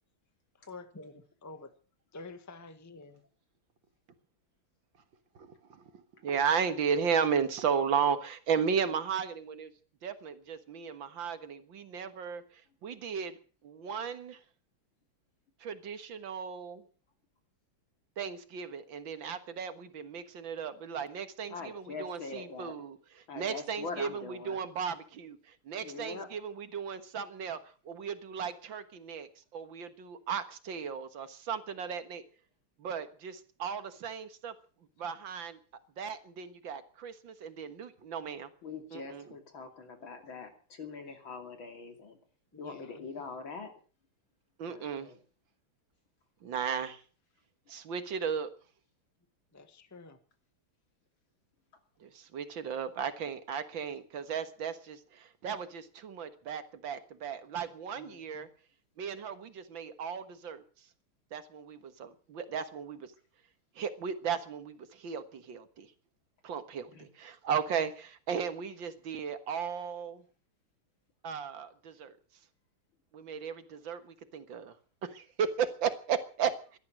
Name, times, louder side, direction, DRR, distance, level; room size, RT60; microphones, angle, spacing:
voice 1, 0.7-1.7 2.1-3.1 42.5-43.1 49.5-50.2, left 3 dB, 10° left, 9 dB, 1.2 m, -48 dB
voice 2, 5.4-9.7 10.0-12.4 12.8-13.3 13.6-14.4 15.6-16.8 18.2-27.6 27.9-32.2 32.8-34.5 35.0-35.6 36.0-38.5 38.9-39.3 44.6-45.1 46.4-47.0 47.7-48.5 52.0-58.5 59.0-60.6 61.3-63.1 63.8-65.9 66.4-70.2 71.2-72.1 73.1-74.7 75.0-76.5, right 7 dB, 65° right, 10 dB, 2.2 m, -35 dB
voice 3, 21.5-22.7 23.3-24.6 25.8-26.3 38.6-42.2 42.6-43.7 44.6-45.2 58.0-58.4 66.9-67.1, left 4 dB, 65° left, 6 dB, 3.4 m, -43 dB
17.5 x 12.5 x 6.2 m, 0.40 s
omnidirectional pair, 2.4 m